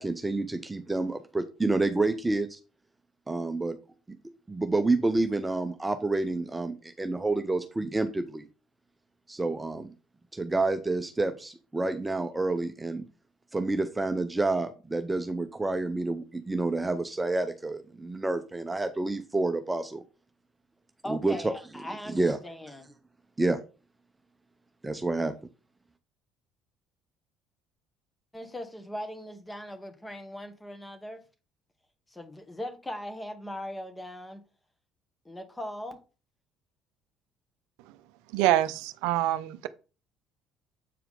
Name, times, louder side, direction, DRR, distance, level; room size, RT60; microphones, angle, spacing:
voice 1, 0.0-2.6 3.3-3.8 4.5-8.4 9.3-9.9 10.3-13.0 13.5-20.0 21.1-21.5 22.1-22.4 23.4-23.6 24.8-25.3, right 2 dB, 15° right, 0.8 m, -28 dB
voice 2, 21.0-22.9 28.3-31.2 32.1-34.4 35.3-36.0, left 1 dB, 15° left, 1.8 m, -39 dB
voice 3, 38.3-39.7, right 14 dB, 70° right, 0.5 m, -25 dB
8.3 x 4.5 x 3.8 m
hypercardioid pair, 60°, 0 cm